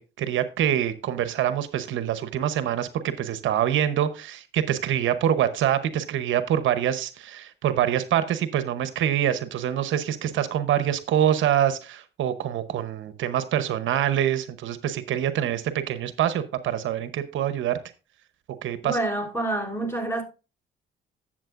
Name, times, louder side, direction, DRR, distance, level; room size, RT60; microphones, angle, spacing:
voice 1, 0.0-17.8 18.6-19.0, right 10 dB, 75° right, 0.9 m, -25 dB
voice 2, 18.8-20.2, right 1 dB, 10° left, 3.1 m, -27 dB
12.5 x 7.5 x 2.5 m
cardioid pair, 90°, 20 cm